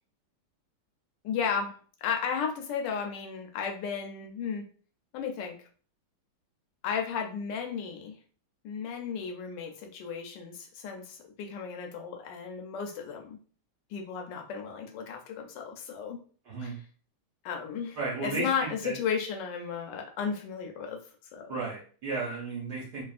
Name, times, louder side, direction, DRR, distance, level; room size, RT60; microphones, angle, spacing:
voice 1, 1.2-1.7 2.0-4.7 5.1-5.6 6.8-8.2 8.6-13.4 13.9-16.2 16.6-16.8 17.4-18.0 18.2-21.0 21.3-21.6, left 6 dB, 75° left, 2 dB, 1.0 m, -34 dB
voice 2, 18.0-18.9 21.5-23.0, right 3 dB, 60° right, -6 dB, 1.2 m, -34 dB
3.3 x 2.3 x 2.4 m, 0.41 s
omnidirectional pair, 2.4 m